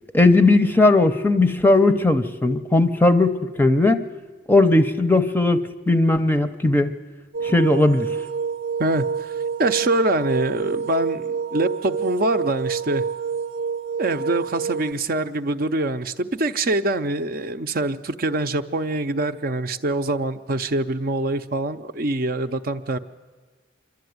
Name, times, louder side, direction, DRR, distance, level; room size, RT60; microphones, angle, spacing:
voice 1, 0.1-4.0 4.5-6.9 7.4-8.1, left 2 dB, 10° left, 10 dB, 0.7 m, -17 dB
sound 1, 7.3-14.9, right 6 dB, 85° right, 0.8 m, -28 dB
voice 2, 8.8-9.3 9.6-13.0 14.0-23.0, right 2 dB, 50° right, 9 dB, 0.6 m, -24 dB
26.0 x 12.0 x 9.4 m, 1.4 s
head